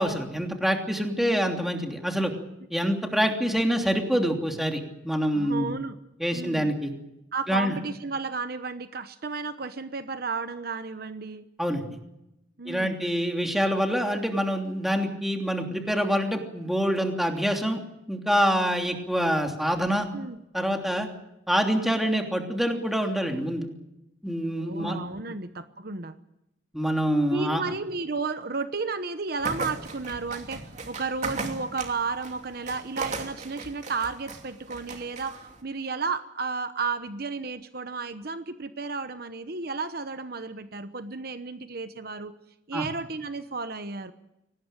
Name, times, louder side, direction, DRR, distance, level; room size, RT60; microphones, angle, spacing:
voice 1, 0.0-2.3 2.7-5.7 6.2-6.9 7.5-7.7 11.6-11.8 12.6-17.8 18.1-20.1 20.5-21.1 21.5-23.7 24.2-25.0 26.7-27.7 42.7-42.9, equal, ahead, 3 dB, 3.0 m, -26 dB
voice 2, 5.3-6.0 6.3-6.7 7.3-11.5 12.6-13.0 20.1-20.4 24.4-26.1 27.3-35.4 35.6-42.3 42.7-44.1, right 4 dB, 55° right, 10 dB, 1.0 m, -33 dB
sound 1, 29.4-35.6, right 3 dB, 40° right, 2.9 m, -37 dB
24.0 x 19.0 x 9.0 m, 0.89 s
head